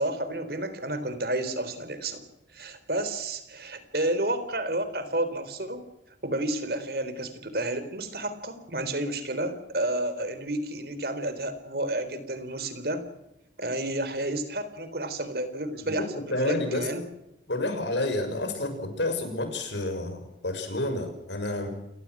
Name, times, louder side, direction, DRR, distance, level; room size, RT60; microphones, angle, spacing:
voice 1, 0.0-2.2 2.5-5.9 6.2-13.1 13.6-17.1, right 1 dB, 60° right, 11 dB, 3.9 m, -31 dB
voice 2, 15.8-16.9 17.5-21.7, left 2 dB, 90° left, 7 dB, 6.5 m, -30 dB
29.0 x 19.5 x 6.3 m, 0.89 s
head